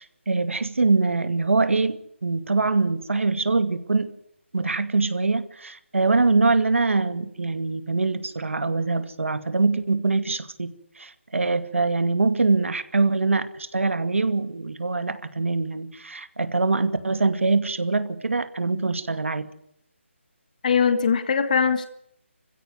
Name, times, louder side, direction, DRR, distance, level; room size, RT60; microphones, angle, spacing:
voice 1, 0.0-4.1 4.5-19.5, right 3 dB, 75° right, 10 dB, 2.4 m, -23 dB
voice 2, 20.6-21.9, left 6 dB, 35° left, 10 dB, 1.7 m, -21 dB
25.5 x 16.0 x 9.5 m, 0.73 s
figure-of-eight pair, 165°, 7 cm